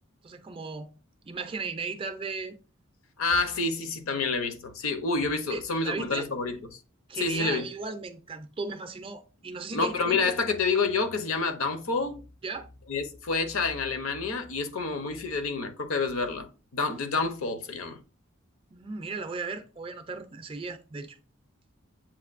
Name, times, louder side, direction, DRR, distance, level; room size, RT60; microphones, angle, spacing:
voice 1, 0.2-0.9 1.3-2.6 5.5-6.3 7.1-10.3 12.4-12.7 18.7-21.2, right 4 dB, 25° right, 0.4 m, -36 dB
voice 2, 3.2-6.8 7.1-7.6 9.7-12.2 12.9-16.5 16.7-18.0, left 4 dB, 80° left, 0.7 m, -28 dB
7.2 x 2.5 x 2.5 m
head